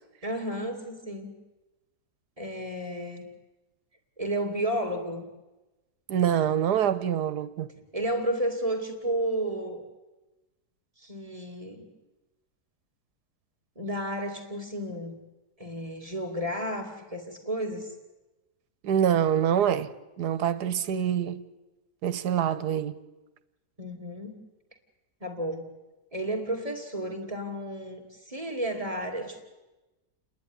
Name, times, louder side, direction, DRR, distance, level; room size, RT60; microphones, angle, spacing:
voice 1, 0.2-1.4 2.4-3.3 4.2-5.3 7.9-9.9 11.0-11.9 13.8-15.2 15.6-17.9 23.8-24.4 25.2-25.7 26.1-29.4, right 1 dB, 20° right, 2.4 m, -32 dB
voice 2, 6.1-7.7 18.8-19.9 20.2-21.4 22.0-23.0, right 9 dB, 90° right, 1.5 m, -25 dB
29.0 x 11.0 x 9.8 m
omnidirectional pair, 1.7 m